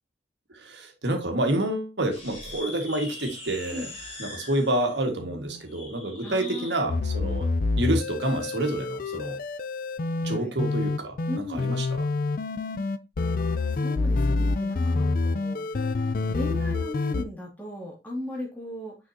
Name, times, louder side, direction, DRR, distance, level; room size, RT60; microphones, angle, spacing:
voice 1, 0.5-3.9 4.2-7.5 7.8-9.4 10.2-12.0, right 1 dB, 75° right, 1.8 m, -28 dB
sound 1, 2.1-6.8, left 1 dB, 35° left, 3.7 m, -42 dB
voice 2, 6.2-6.7 10.3-10.5 11.3-11.7 13.7-15.7 16.3-19.0, left 1 dB, 10° left, 2.4 m, -36 dB
sound 2, 6.9-17.2, left 3 dB, 50° left, 0.4 m, -27 dB
6.3 x 5.6 x 2.8 m
head